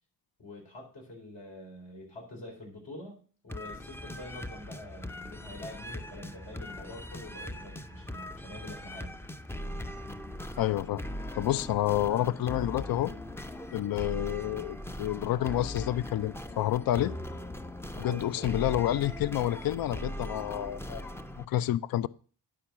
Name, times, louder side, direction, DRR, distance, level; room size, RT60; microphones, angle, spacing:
voice 1, 0.4-9.2 17.9-18.7, left 1 dB, 75° left, 4.2 m, -46 dB
sound 1, 3.5-21.5, left 1 dB, 5° left, 0.5 m, -40 dB
voice 2, 10.6-11.0 11.4-13.1 13.7-17.1 18.0-21.1 21.4-22.1, left 13 dB, 55° left, 0.5 m, -29 dB
10.0 x 4.6 x 5.9 m
cardioid pair, 75°, 43 cm